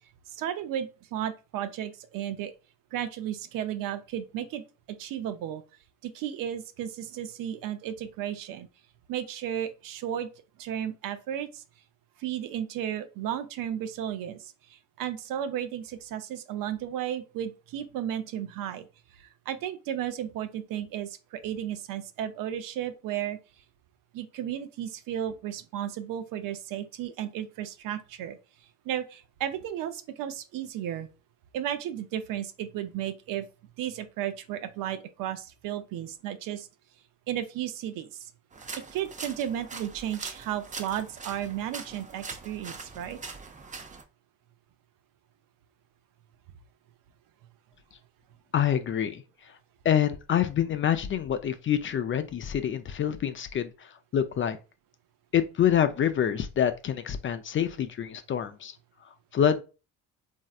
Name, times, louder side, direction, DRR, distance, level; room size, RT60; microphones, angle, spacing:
voice 1, 0.3-2.5 2.9-4.6 4.9-5.6 6.0-8.7 9.1-10.3 10.6-11.6 12.2-18.9 19.1-23.4 24.1-28.4 28.8-31.1 31.5-33.5 33.8-36.7 37.3-38.3 38.9-43.2, right 10 dB, 65° right, 0.6 m, -34 dB
sound 1, 38.5-44.0, right 4 dB, 20° right, 0.5 m, -42 dB
voice 2, 48.5-49.6 49.8-54.6 55.3-58.8 59.3-59.6, left 9 dB, 35° left, 0.4 m, -26 dB
3.1 x 2.7 x 2.3 m
supercardioid pair, 75°, 37 cm